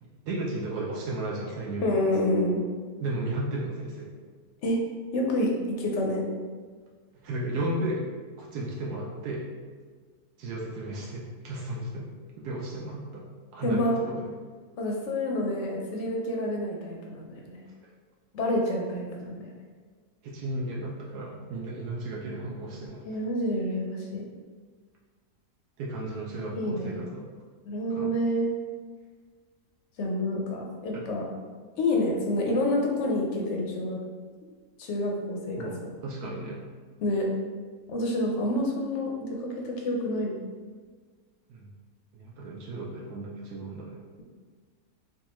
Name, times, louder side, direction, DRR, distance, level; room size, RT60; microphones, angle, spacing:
voice 1, 0.0-2.1 3.0-4.1 7.2-8.0 8.4-9.5 10.4-12.1 12.4-13.2 13.5-14.3 17.8-17.9 20.2-23.1 25.8-27.3 27.9-28.1 35.6-36.6 41.5-41.7 42.1-44.0, right 1 dB, 80° right, -3 dB, 1.1 m, -34 dB
voice 2, 1.8-2.6 4.6-4.8 5.1-5.5 5.8-6.2 13.6-14.0 14.8-17.6 18.3-19.5 23.0-24.2 26.5-27.0 27.7-28.5 30.0-31.2 31.8-34.0 34.8-35.6 37.0-37.3 37.9-40.3, left 1 dB, 65° left, 0 dB, 0.7 m, -28 dB
4.5 x 2.3 x 3.0 m, 1.5 s
omnidirectional pair, 1.7 m